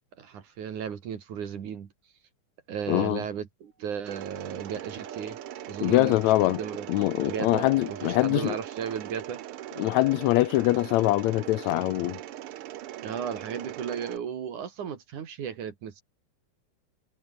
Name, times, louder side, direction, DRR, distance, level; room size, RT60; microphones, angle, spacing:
voice 1, 0.2-1.9 2.7-5.4 5.7-6.9 7.3-9.4 13.0-16.0, right 8 dB, 65° right, 3.6 m, -35 dB
voice 2, 2.9-3.2 5.8-6.6 6.9-8.6 9.8-12.2, left 17 dB, 80° left, 1.6 m, -23 dB
Mechanisms, 4.0-14.2, right 13 dB, 80° right, 1.2 m, -40 dB
Dog, 4.1-9.6, right 3 dB, 35° right, 0.7 m, -50 dB
omnidirectional pair, 3.8 m